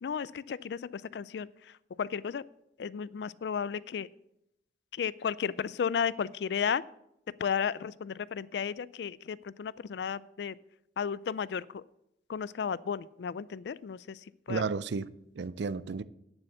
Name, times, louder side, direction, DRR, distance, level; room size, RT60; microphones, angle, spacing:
voice 1, 0.0-1.5 2.0-2.4 2.8-4.1 4.9-6.8 7.4-10.6 11.0-11.8 12.3-14.2 14.5-14.6, left 7 dB, 70° left, 0.4 m, -33 dB
voice 2, 14.5-16.0, right 4 dB, 75° right, 0.5 m, -33 dB
9.2 x 7.1 x 6.7 m
head